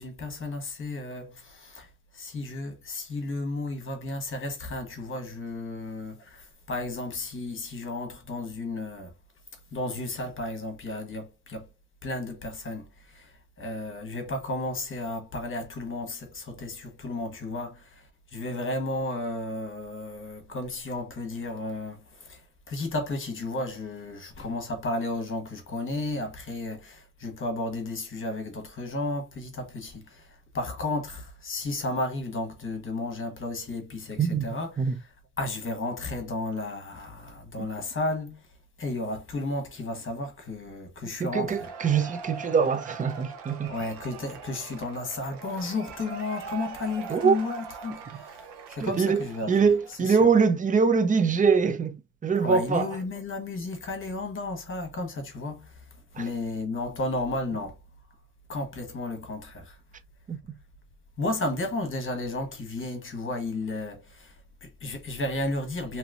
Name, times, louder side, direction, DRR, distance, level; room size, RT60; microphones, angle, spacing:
voice 1, 0.0-9.1 9.7-11.7 12.0-35.1 35.4-41.7 43.7-49.7 50.0-50.3 52.4-57.8 58.5-59.8 61.2-66.0, left 2 dB, 30° left, 1.2 m, -33 dB
voice 2, 41.2-43.7 47.1-47.4 48.8-52.9 56.2-56.3 60.3-60.6, right 5 dB, 20° right, 0.4 m, -23 dB
Cheering / Applause / Crowd, 41.3-50.2, right 5 dB, 80° right, 0.9 m, -42 dB
3.0 x 2.9 x 2.4 m
cardioid pair, 120°, 39 cm